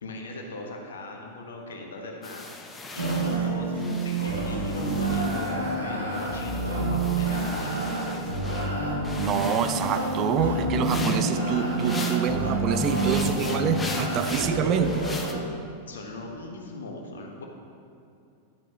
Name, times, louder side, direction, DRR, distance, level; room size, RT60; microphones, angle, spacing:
voice 1, 0.0-2.5 2.9-8.4 11.8-12.2 12.9-13.3 15.9-17.4, left 2 dB, 65° left, 1 dB, 1.4 m, -40 dB
sound 1, 2.2-5.8 6.1-8.7 9.0-12.4 12.7-15.3, left 3 dB, 15° left, 0.8 m, -39 dB
sound 2, 3.0-15.3, right 2 dB, 85° right, 2.5 m, -28 dB
voice 2, 9.2-15.1, right 7 dB, 35° right, 8 dB, 0.6 m, -26 dB
10.5 x 10.5 x 3.0 m, 2.6 s
figure-of-eight pair, 90°, 0 cm